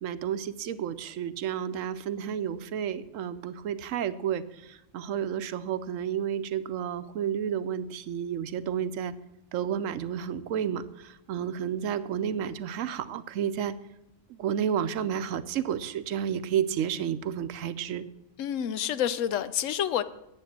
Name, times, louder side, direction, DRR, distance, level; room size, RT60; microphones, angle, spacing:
voice 1, 0.0-9.1 9.5-13.8 14.3-18.0, right 9 dB, 80° right, 13 dB, 1.0 m, -31 dB
voice 2, 18.4-20.0, left 10 dB, 75° left, 14 dB, 1.0 m, -28 dB
9.9 x 8.5 x 7.4 m, 0.89 s
omnidirectional pair, 1.4 m